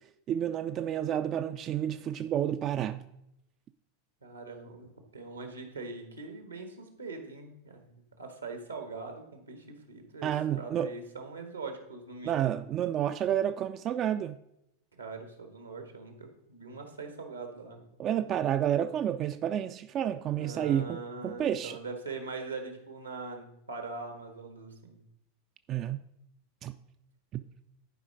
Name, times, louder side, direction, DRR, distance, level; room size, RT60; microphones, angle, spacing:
voice 1, 0.3-3.0 10.2-10.9 12.2-14.4 18.0-21.8 25.7-26.0 26.6-26.7 27.3-27.4, right 10 dB, 35° right, 0.4 m, -30 dB
voice 2, 4.2-10.3 10.6-12.5 15.0-17.8 20.4-25.0, right 3 dB, 90° right, 1.7 m, -42 dB
11.0 x 5.0 x 4.9 m
figure-of-eight pair, 90°, 0 cm